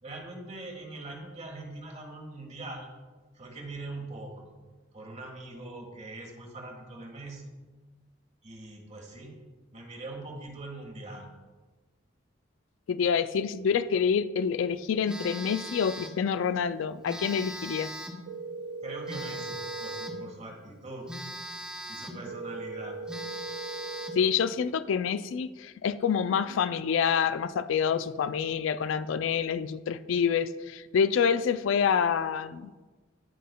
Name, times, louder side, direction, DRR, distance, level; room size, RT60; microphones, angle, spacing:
voice 1, 0.0-2.9 3.3-4.5 4.9-7.4 8.4-9.3 9.7-11.3 18.8-21.1 21.9-23.0, right 2 dB, 35° right, 1 dB, 1.5 m, -42 dB
voice 2, 12.9-17.9 24.2-32.7, left 7 dB, 90° left, 13 dB, 0.3 m, -27 dB
Telephone, 15.1-16.2 17.1-18.3 19.1-20.3 21.1-22.3 22.7-22.8 23.1-24.3, right 1 dB, 5° right, 0.6 m, -40 dB
sound 1, 18.3-20.3 22.3-24.3, right 3 dB, 80° right, 0.4 m, -39 dB
16.0 x 5.5 x 2.2 m, 1.3 s
head